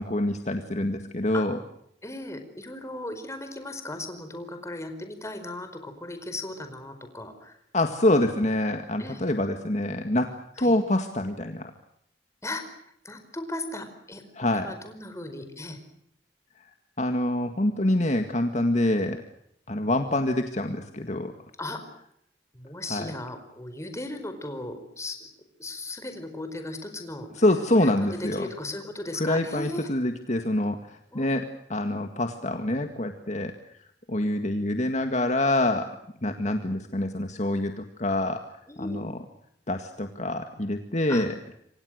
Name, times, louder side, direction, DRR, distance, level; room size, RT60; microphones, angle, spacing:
voice 1, 0.0-1.6 7.7-11.7 14.3-14.7 17.0-19.2 19.7-21.3 22.9-23.1 27.4-28.5 29.2-30.8 31.2-33.5 34.1-35.9 36.2-38.4 38.8-39.1 39.7-41.3, left 1 dB, 40° left, 6 dB, 1.9 m, -26 dB
voice 2, 2.0-7.6 9.0-9.2 10.6-10.7 12.4-12.6 13.0-14.2 14.5-15.8 21.6-21.8 22.5-25.3 25.6-27.3 27.8-29.9 31.1-31.3 38.7-39.1 41.1-41.3, left 2 dB, 15° left, 7 dB, 4.8 m, -37 dB
28.0 x 25.0 x 6.5 m, 0.73 s
head